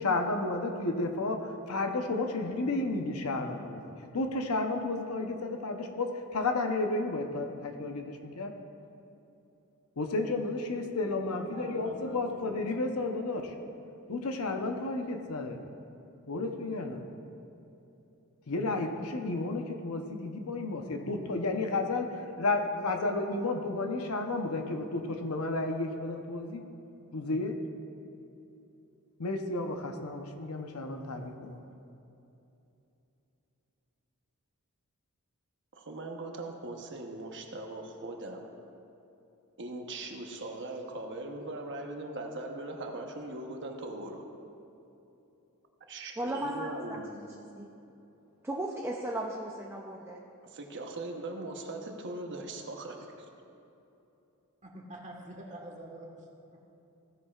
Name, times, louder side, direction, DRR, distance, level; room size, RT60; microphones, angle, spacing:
voice 1, 0.0-3.8 4.1-8.5 10.0-13.5 14.1-15.6 16.3-17.0 18.5-26.6 27.1-27.5 29.2-31.6, left 2 dB, 70° left, 5 dB, 0.9 m, -32 dB
voice 2, 11.2-12.6 14.0-14.5 54.6-56.1, right 1 dB, 35° right, 0 dB, 1.4 m, -47 dB
voice 3, 35.7-38.4 39.6-44.2 45.9-47.1 50.4-53.1, right 2 dB, 55° right, 2 dB, 1.0 m, -40 dB
voice 4, 46.2-47.3 47.6-47.7 48.4-50.2, right 1 dB, 10° right, -2 dB, 0.6 m, -36 dB
16.0 x 9.9 x 2.4 m, 2.9 s
head